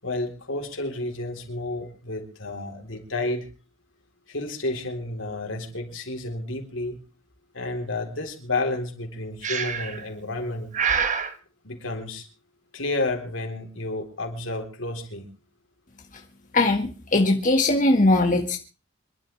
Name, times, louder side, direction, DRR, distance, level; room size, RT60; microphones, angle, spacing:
voice 1, 0.0-3.5 4.3-7.0 7.5-10.7 11.6-12.3 12.7-15.3, left 2 dB, 85° left, 3 dB, 4.0 m, -31 dB
Breathing, 9.4-10.0 10.7-11.3, right 6 dB, 40° right, 1.3 m, -26 dB
voice 2, 16.5-18.6, left 2 dB, 40° left, 3 dB, 1.8 m, -20 dB
26.5 x 12.0 x 3.5 m, 0.33 s
head